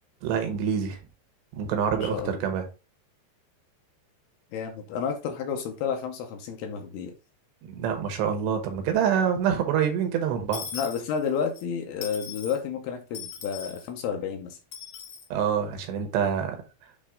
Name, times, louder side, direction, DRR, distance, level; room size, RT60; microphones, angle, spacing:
voice 1, 0.2-1.0 1.5-2.6 7.7-10.6 15.3-16.6, right 8 dB, 75° right, 3.2 m, -26 dB
voice 2, 1.9-2.4 4.5-7.1 10.7-14.6, left 7 dB, 75° left, 2.6 m, -31 dB
Dishes pots and pans / Coin (dropping), 10.5-11.6 12.0-12.6 13.1-13.9 14.7-15.3, left 6 dB, 60° left, 2.7 m, -39 dB
8.4 x 3.6 x 3.6 m
omnidirectional pair, 5.1 m